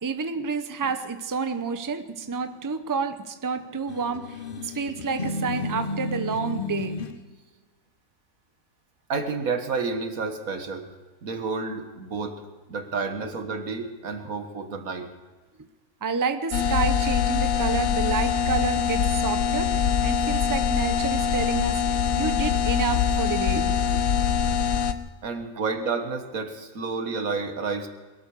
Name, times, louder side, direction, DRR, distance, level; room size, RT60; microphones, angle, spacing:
voice 1, 0.0-7.0 13.2-13.3 15.6-15.7 16.0-19.7 20.0-24.0, right 5 dB, 20° right, 9 dB, 0.7 m, -29 dB
sound 1, 3.9-7.2, left 2 dB, 45° left, 1.1 m, -32 dB
voice 2, 9.1-10.9 11.2-12.4 12.7-15.1 25.2-27.9, right 4 dB, 80° right, 7 dB, 1.9 m, -30 dB
sound 2, 16.5-24.9, left 7 dB, 80° left, 1.3 m, -23 dB
22.0 x 13.5 x 4.8 m, 1.3 s
omnidirectional pair, 1.4 m